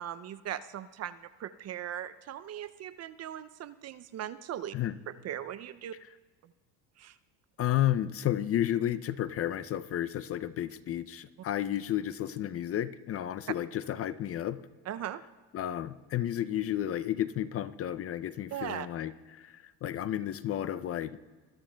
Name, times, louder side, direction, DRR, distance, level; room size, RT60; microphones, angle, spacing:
voice 1, 0.0-4.7 5.1-5.9 7.0-7.2 14.9-15.2 18.5-18.9, right 11 dB, 40° right, 14 dB, 0.4 m, -39 dB
voice 2, 7.6-14.6 15.5-21.2, left 11 dB, 35° left, 14 dB, 0.4 m, -32 dB
23.5 x 13.0 x 2.2 m, 1.3 s
supercardioid pair, 95°, 43 cm